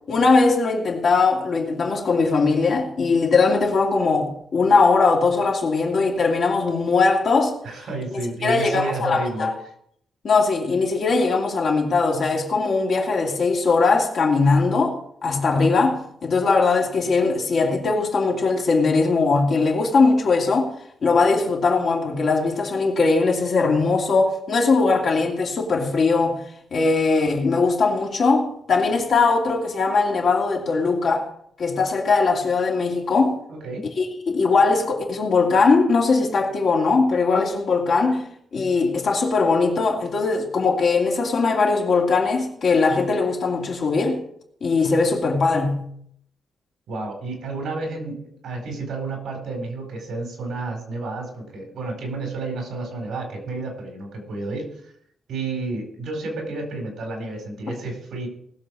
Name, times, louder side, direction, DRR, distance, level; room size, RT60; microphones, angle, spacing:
voice 1, 0.1-7.6 8.1-9.5 10.2-20.7 21.0-26.4 26.7-31.3 31.6-33.4 34.0-44.2 44.6-45.9, left 4 dB, 45° left, 2.5 m, -20 dB
voice 2, 7.6-9.5 33.5-33.9 46.9-54.7 55.3-58.3, right 3 dB, 70° right, 4.4 m, -31 dB
19.5 x 7.3 x 4.7 m
wide cardioid pair, 175°, 0 cm